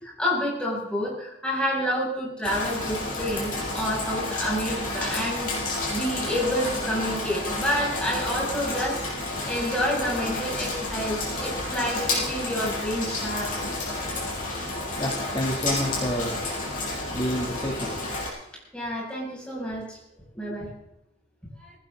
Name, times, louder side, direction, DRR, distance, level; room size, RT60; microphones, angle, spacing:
voice 1, 0.0-5.5 5.9-9.0 9.5-13.5 18.7-20.0 20.4-20.7 21.6-21.7, equal, 5° left, -5 dB, 6.8 m, -29 dB
Rain, 2.4-18.3, left 2 dB, 40° left, 5.8 m, -30 dB
voice 2, 15.0-16.4 17.1-17.9 20.4-20.6, equal, 25° left, -3 dB, 2.7 m, -29 dB
20.0 x 16.5 x 3.9 m, 0.85 s
head